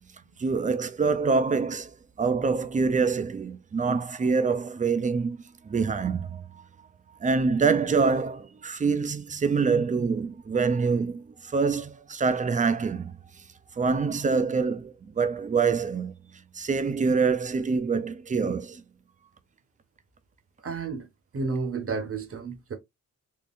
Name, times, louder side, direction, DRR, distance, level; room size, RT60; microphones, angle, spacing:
voice 1, 0.4-6.6 7.2-13.1 13.8-16.1 16.5-18.8, right 5 dB, 25° right, 0.4 m, -25 dB
voice 2, 20.6-21.1 21.3-22.7, right 4 dB, 45° right, 0.9 m, -31 dB
3.7 x 3.2 x 2.4 m
wide cardioid pair, 125°, 33 cm